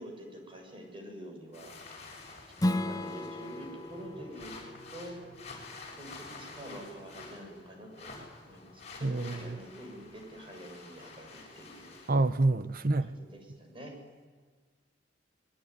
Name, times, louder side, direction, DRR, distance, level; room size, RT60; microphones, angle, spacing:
voice 1, 0.0-1.7 2.6-4.5 4.9-5.3 6.0-8.1 8.4-12.0 13.0-13.9, equal, 30° right, 2 dB, 7.3 m, -46 dB
sound 1, 1.5-12.1, left 3 dB, 35° left, 7.5 m, -49 dB
Strum, 2.6-7.8, left 1 dB, 20° left, 1.1 m, -37 dB
voice 2, 9.0-9.3 12.1-13.1, right 2 dB, 50° right, 13 dB, 1.0 m, -27 dB
25.5 x 22.0 x 9.9 m, 1.5 s
head